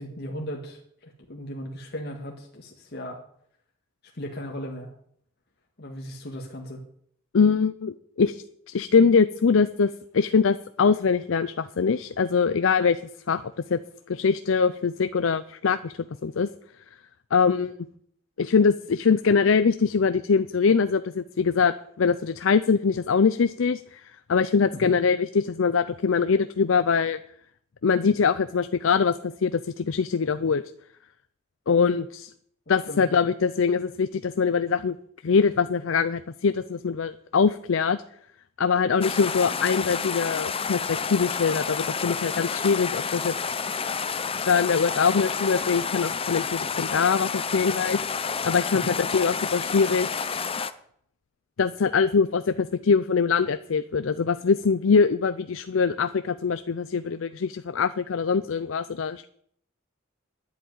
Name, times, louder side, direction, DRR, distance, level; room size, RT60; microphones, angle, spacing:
voice 1, 0.0-3.2 4.1-4.9 5.8-6.8 24.7-25.0 32.9-33.0 48.7-49.0, equal, 55° left, 0 dB, 1.8 m, -36 dB
voice 2, 7.3-13.0 13.3-13.4 13.7-13.8 14.1-15.9 16.2-16.5 17.3-17.8 18.4-27.2 27.8-29.1 29.4-30.6 31.7-32.3 32.7-35.0 35.2-38.0 38.6-43.3 44.5-48.0 48.4-50.1 51.6-59.3, left 5 dB, 75° left, 12 dB, 0.5 m, -23 dB
sound 1, 39.0-50.7, left 6 dB, 30° left, 0.7 m, -30 dB
10.5 x 8.5 x 9.3 m, 0.66 s
head